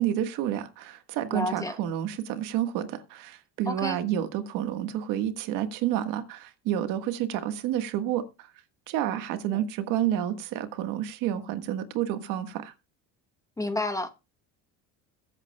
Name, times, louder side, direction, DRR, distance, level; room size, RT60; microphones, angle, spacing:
voice 1, 0.0-8.2 8.9-12.7, right 11 dB, 70° right, 1.5 m, -29 dB
voice 2, 1.3-1.7 3.7-4.0 9.5-9.6 13.6-14.1, left 2 dB, 10° left, 1.0 m, -30 dB
22.0 x 8.3 x 2.3 m
cardioid pair, 130°, 33 cm